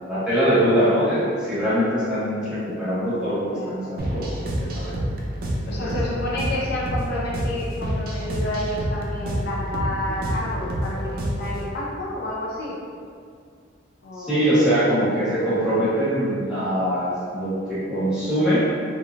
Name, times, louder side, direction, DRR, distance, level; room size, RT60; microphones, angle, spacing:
voice 1, 0.1-4.3 4.6-4.9 5.7-6.0 14.1-18.7, equal, 5° right, -14 dB, 1.0 m, -22 dB
voice 2, 3.5-3.8 5.6-12.8 14.0-14.5, left 1 dB, 55° left, -5 dB, 0.3 m, -30 dB
sound 1, 4.0-11.6, equal, 50° right, 0.4 m, -28 dB
3.0 x 2.1 x 2.4 m, 2.2 s
head